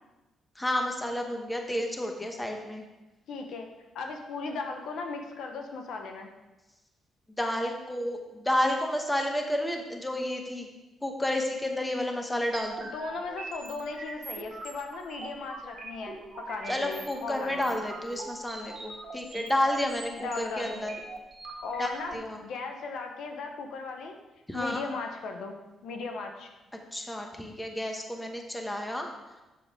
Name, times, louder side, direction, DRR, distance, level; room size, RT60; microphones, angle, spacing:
voice 1, 0.6-2.8 7.4-10.7 11.0-12.9 16.7-20.9 21.8-22.4 24.5-24.8 26.9-29.1, left 1 dB, 10° left, 3 dB, 1.1 m, -31 dB
voice 2, 3.3-3.7 3.9-6.3 12.8-17.8 20.2-20.8 21.6-24.2 24.5-26.5, left 4 dB, 75° left, 4 dB, 0.9 m, -37 dB
sound 1, 12.5-22.1, right 3 dB, 45° right, 1.7 m, -43 dB
7.7 x 6.4 x 3.6 m, 1.1 s
cardioid pair, 90°, 0 cm